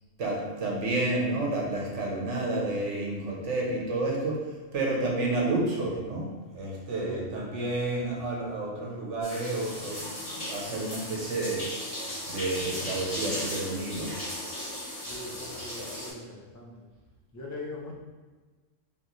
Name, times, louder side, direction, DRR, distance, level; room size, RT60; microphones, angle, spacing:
voice 1, 0.2-4.4 4.7-11.7 12.3-14.1, right 2 dB, 70° right, -2 dB, 1.2 m, -30 dB
voice 2, 6.9-7.3 15.0-16.7 17.3-17.9, left 1 dB, 25° left, -3 dB, 0.4 m, -40 dB
sound 1, 9.2-16.1, left 1 dB, 50° left, 1.9 m, -36 dB
3.9 x 3.2 x 3.0 m, 1.3 s
omnidirectional pair, 1.3 m